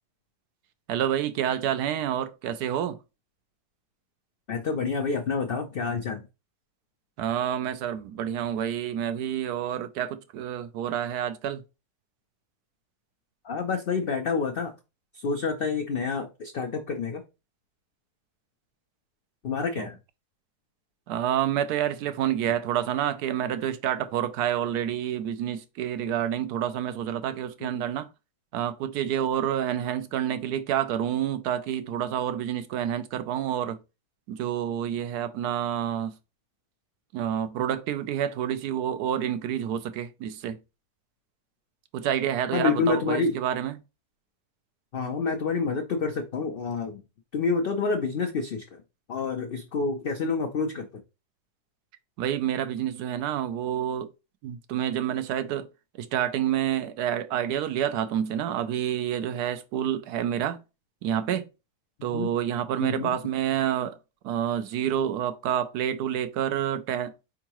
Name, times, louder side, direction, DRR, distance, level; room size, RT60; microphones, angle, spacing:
voice 1, 0.9-3.0 7.2-11.6 19.8-19.9 21.1-28.1 28.5-33.8 34.3-36.1 37.1-40.6 41.9-43.8 52.2-54.1 54.4-55.7 56.0-60.6 61.0-61.5 62.0-64.0 64.2-67.1, right 10 dB, 85° right, 1.1 m, -28 dB
voice 2, 4.5-6.2 13.4-14.7 15.1-17.2 19.4-20.0 27.6-27.8 42.5-43.4 44.9-47.0 47.3-48.8 49.1-50.9 62.1-62.3 62.8-63.1, left 4 dB, 80° left, 0.5 m, -28 dB
4.5 x 3.6 x 2.9 m
omnidirectional pair, 1.7 m